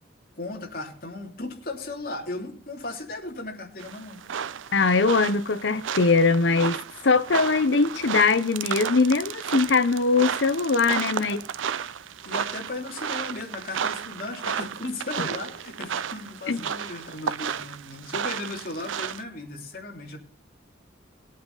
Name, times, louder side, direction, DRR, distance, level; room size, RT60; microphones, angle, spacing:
voice 1, 0.4-4.2 11.2-11.4 12.2-20.2, left 2 dB, 50° left, 3.1 m, -36 dB
sound 1, 3.8-19.2, right 7 dB, 85° right, 0.5 m, -33 dB
voice 2, 4.7-11.4 16.5-16.6, left 4 dB, 70° left, 0.8 m, -21 dB
19.0 x 8.6 x 4.0 m
head